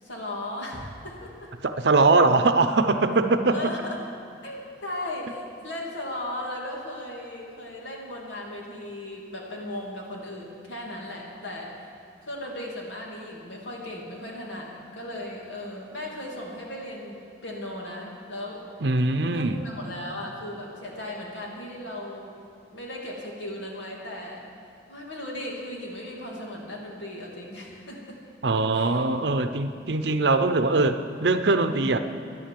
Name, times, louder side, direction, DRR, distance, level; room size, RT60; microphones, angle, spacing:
voice 1, 0.0-1.5 3.5-4.0 4.4-11.9 12.2-18.6 19.2-22.3 22.7-24.5 24.9-28.2 28.7-29.0, left 1 dB, 80° left, -2 dB, 2.8 m, -37 dB
voice 2, 1.6-3.7 18.8-19.6 28.4-32.0, right 3 dB, 65° right, 9 dB, 0.7 m, -22 dB
11.5 x 10.5 x 7.6 m, 2.4 s
head